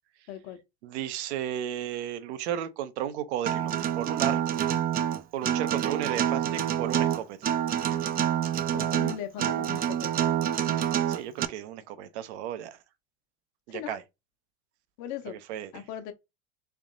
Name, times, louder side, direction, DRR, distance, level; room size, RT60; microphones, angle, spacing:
voice 1, 0.3-0.6 8.7-10.1 13.7-14.0 15.0-15.4 15.7-16.1, left 10 dB, 55° left, 1.0 m, -38 dB
voice 2, 0.8-4.4 5.3-7.4 11.1-12.8 13.7-14.0 15.3-15.8, right 10 dB, 75° right, 0.8 m, -34 dB
Acoustic guitar, 3.5-11.4, right 10 dB, 25° right, 0.4 m, -27 dB
3.5 x 2.9 x 3.8 m
hypercardioid pair, 100°, 34 cm